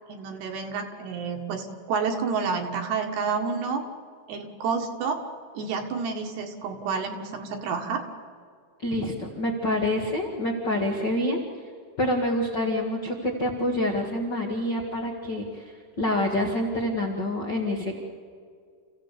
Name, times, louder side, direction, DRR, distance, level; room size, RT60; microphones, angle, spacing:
voice 1, 0.1-3.8 4.3-5.2 5.6-8.0, right 5 dB, 65° right, 4 dB, 3.3 m, -29 dB
voice 2, 8.8-11.4 12.0-17.9, left 1 dB, 60° left, 0 dB, 1.1 m, -27 dB
28.5 x 16.0 x 8.3 m, 2.2 s
omnidirectional pair, 5.5 m